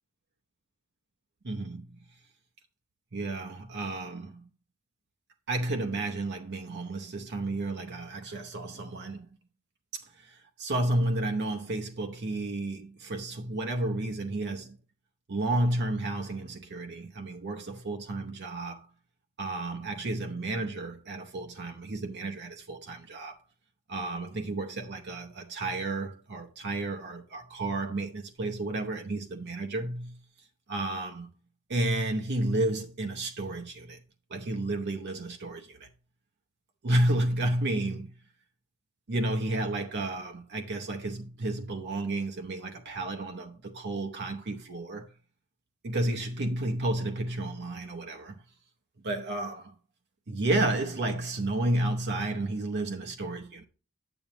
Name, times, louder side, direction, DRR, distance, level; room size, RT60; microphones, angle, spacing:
voice 1, 1.4-1.9 3.1-4.4 5.5-9.3 9.9-14.7 15.3-18.9 19.4-23.4 23.9-30.2 30.7-31.3 31.7-34.0 34.3-35.9 36.8-38.1 39.1-45.1 45.8-48.4 49.0-49.7 50.3-53.6, right 2 dB, 50° right, 0.8 m, -31 dB
9.3 x 7.0 x 3.0 m
head